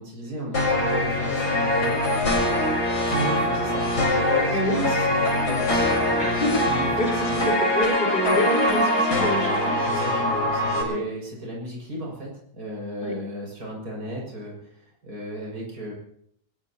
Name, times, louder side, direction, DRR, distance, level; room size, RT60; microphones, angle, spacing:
voice 1, 0.0-2.6 3.1-6.3 6.6-7.4 9.8-15.9, right 1 dB, 65° right, -2 dB, 7.0 m, -35 dB
sound 1, 0.5-10.8, left 1 dB, 65° left, 5.3 m, -23 dB
voice 2, 4.5-4.9 6.2-9.8 10.9-11.0 13.0-13.1, left 1 dB, 30° left, 0 dB, 5.1 m, -27 dB
23.0 x 21.5 x 2.9 m, 0.65 s
omnidirectional pair, 1.8 m